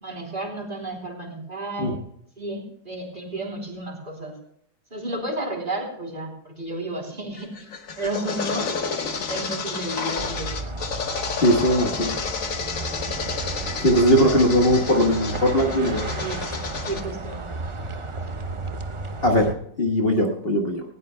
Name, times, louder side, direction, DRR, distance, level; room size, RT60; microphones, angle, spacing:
voice 1, 0.0-2.0 2.4-4.3 4.9-7.7 8.0-8.7 9.3-10.8 14.1-14.6 16.2-16.5 16.9-17.5, right 2 dB, 30° right, -1 dB, 3.7 m, -32 dB
sound 1, 7.4-17.0, left 5 dB, 55° left, 1.7 m, -30 dB
sound 2, 10.2-19.5, right 3 dB, 50° right, 0.3 m, -33 dB
voice 2, 11.4-12.2 13.8-16.0 19.2-20.8, equal, 35° left, 0 dB, 1.6 m, -20 dB
19.0 x 17.5 x 2.2 m, 0.71 s
omnidirectional pair, 1.8 m